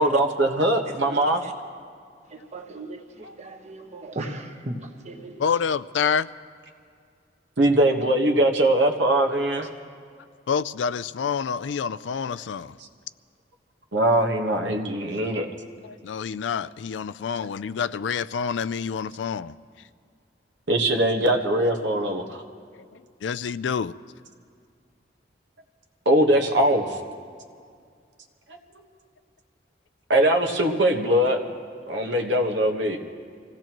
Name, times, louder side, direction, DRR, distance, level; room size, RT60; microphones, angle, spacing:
voice 1, 0.0-1.4 7.6-9.7 13.9-15.5 20.7-22.4 26.0-27.0 28.8-28.9 30.1-31.4 31.9-33.0, right 1 dB, 80° right, 4 dB, 1.3 m, -21 dB
voice 2, 0.9-1.5 2.3-5.6, right 2 dB, 40° right, 4 dB, 1.2 m, -38 dB
voice 3, 5.4-6.3 10.5-12.7 15.8-19.5 23.2-23.9, left 6 dB, 85° left, 15 dB, 0.4 m, -27 dB
25.5 x 17.0 x 3.0 m, 2.2 s
head